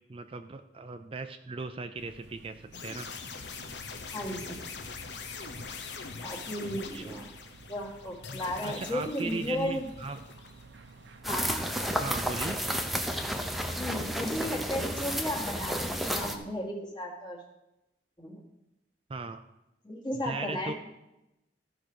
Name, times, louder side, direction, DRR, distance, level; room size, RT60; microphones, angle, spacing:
voice 1, 0.1-3.1 6.9-7.3 8.6-10.2 11.9-12.6 19.1-19.4 20.1-20.7, right 3 dB, 30° right, 8 dB, 0.4 m, -38 dB
sound 1, 2.0-15.1, right 3 dB, 90° right, 0.8 m, -52 dB
sound 2, 2.7-10.8, left 5 dB, 75° left, 1.0 m, -43 dB
voice 2, 4.1-4.6 6.2-7.3 7.7-9.9 11.3-12.0 13.8-17.4 18.2-18.4 19.8-20.7, left 1 dB, 25° left, -1 dB, 2.0 m, -35 dB
sound 3, 11.2-16.3, equal, ahead, 0.8 m, -32 dB
14.0 x 5.0 x 6.2 m, 0.92 s
head